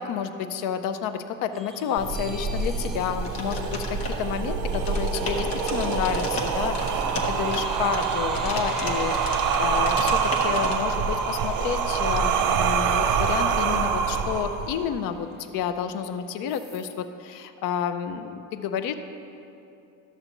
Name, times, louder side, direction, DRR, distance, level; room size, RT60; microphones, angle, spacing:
voice 1, 0.0-15.3 15.5-18.9, left 8 dB, 55° left, 9 dB, 0.5 m, -30 dB
sound 1, 1.5-4.5 6.4-6.7 7.1-14.4 14.8-14.9 15.2-16.1 16.5-17.0, right 1 dB, ahead, 0.7 m, -46 dB
sound 2, 2.0-15.0, right 6 dB, 50° right, 0.7 m, -26 dB
sound 3, 3.2-4.4 4.7-10.7, left 2 dB, 80° left, 1.3 m, -34 dB
13.0 x 6.7 x 2.9 m, 2.8 s
supercardioid pair, 100°, 41 cm